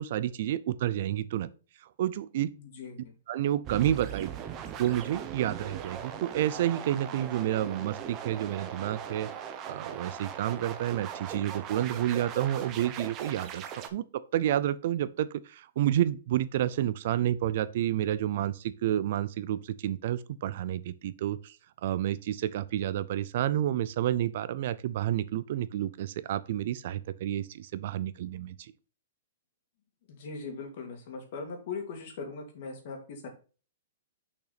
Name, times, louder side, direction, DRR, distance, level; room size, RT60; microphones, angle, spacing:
voice 1, 0.0-1.5 2.0-2.5 3.3-4.3 4.8-9.3 9.7-21.6 21.8-28.7, right 12 dB, 45° right, 0.4 m, -30 dB
voice 2, 2.6-3.1 30.1-33.3, left 4 dB, 40° left, 2.1 m, -40 dB
sound 1, 3.6-13.9, right 8 dB, 20° right, 0.8 m, -39 dB
6.5 x 5.7 x 4.2 m
hypercardioid pair, 175°, 0 cm